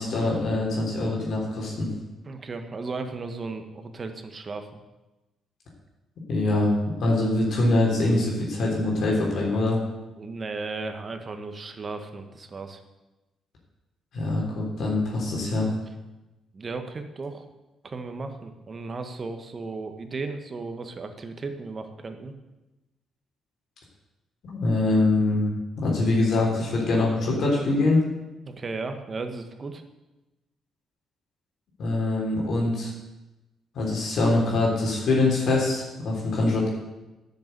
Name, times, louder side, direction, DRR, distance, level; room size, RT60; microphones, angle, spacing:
voice 1, 0.0-1.9 6.3-6.7 7.0-9.8 14.1-15.7 24.4-25.5 25.8-28.0 31.8-32.9 33.7-36.7, left 2 dB, 65° left, -3 dB, 3.6 m, -23 dB
voice 2, 2.2-4.8 10.2-12.8 16.5-17.4 17.8-22.3 28.4-29.8, right 3 dB, 35° right, 7 dB, 1.5 m, -35 dB
10.5 x 6.9 x 8.1 m, 1.0 s
cardioid pair, 90°, 0 cm